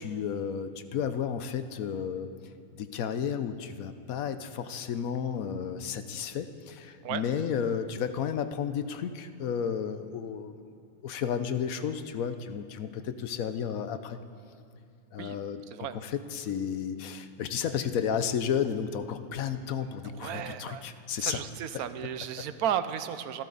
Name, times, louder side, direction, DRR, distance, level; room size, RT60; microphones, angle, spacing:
voice 1, 0.0-2.3 2.8-10.7 11.0-14.2 15.1-21.5 21.7-21.9, left 7 dB, 70° left, 10 dB, 1.1 m, -32 dB
voice 2, 20.2-20.8 21.2-23.4, right 9 dB, 80° right, 12 dB, 1.2 m, -33 dB
27.0 x 12.0 x 4.0 m, 2.4 s
omnidirectional pair, 1.5 m